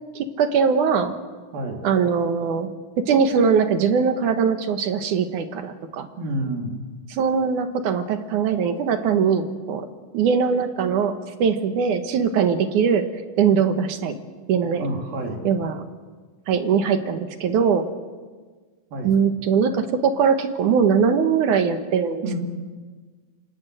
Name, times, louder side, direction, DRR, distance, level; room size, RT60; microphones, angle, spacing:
voice 1, 0.2-1.1 1.8-2.7 3.0-6.1 7.1-9.9 10.1-11.1 11.4-13.0 13.4-14.1 14.5-14.8 15.4-15.8 16.5-17.8 19.0-22.4, right 6 dB, 65° right, 8 dB, 2.6 m, -21 dB
voice 2, 6.2-6.8 14.8-15.4 18.9-19.2 22.2-22.4, right 1 dB, 80° right, 1 dB, 4.9 m, -28 dB
26.5 x 19.0 x 7.8 m, 1.4 s
omnidirectional pair, 4.0 m